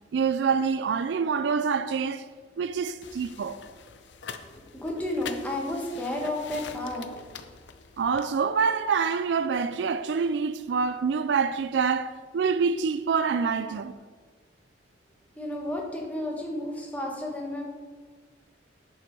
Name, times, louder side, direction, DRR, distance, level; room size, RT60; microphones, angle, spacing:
voice 1, 0.1-2.3 2.6-3.6 8.0-13.9, right 5 dB, 65° right, 0.3 m, -26 dB
sound 1, 3.0-8.3, left 6 dB, 70° left, 0.6 m, -44 dB
voice 2, 4.5-7.1 15.3-17.6, left 1 dB, 10° left, 1.4 m, -32 dB
11.0 x 5.4 x 4.6 m
head